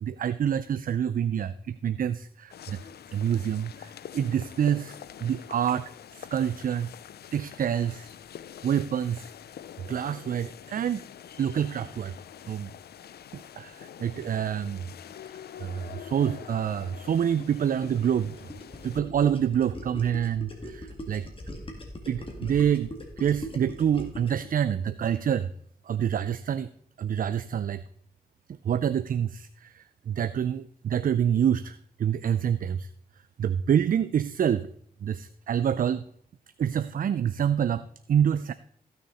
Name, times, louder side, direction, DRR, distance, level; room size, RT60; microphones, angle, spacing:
voice 1, 0.0-2.8 3.1-5.0 5.2-6.9 7.3-8.1 8.6-9.3 9.9-11.0 11.4-12.1 12.5-12.7 13.3-14.8 15.6-18.4 18.8-21.3 22.1-22.9 23.2-25.5 25.9-26.7 27.0-27.8 28.6-32.9 33.4-34.7 35.0-36.0 36.6-38.5, right 9 dB, 60° right, 14 dB, 0.4 m, -27 dB
sound 1, 2.5-19.0, left 10 dB, 90° left, 0.4 m, -45 dB
Gurgling, 17.4-24.5, left 1 dB, 35° left, 2.4 m, -40 dB
14.5 x 6.5 x 4.1 m, 0.64 s
cardioid pair, 70°, 16 cm